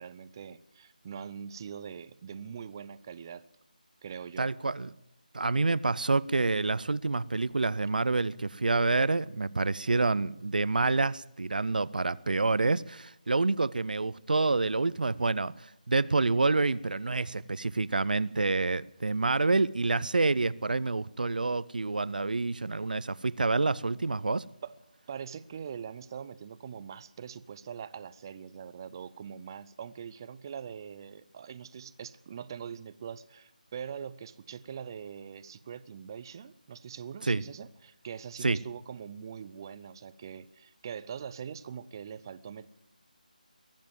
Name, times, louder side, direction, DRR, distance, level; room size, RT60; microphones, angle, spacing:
voice 1, 0.0-3.4 4.0-4.5 24.6-24.7 25.1-42.7, right 7 dB, 30° right, 0.5 m, -42 dB
voice 2, 4.4-4.9 5.3-24.5 37.2-37.4 38.4-38.6, right 3 dB, 75° right, 0.6 m, -28 dB
21.5 x 7.4 x 9.1 m
figure-of-eight pair, 160°, 5 cm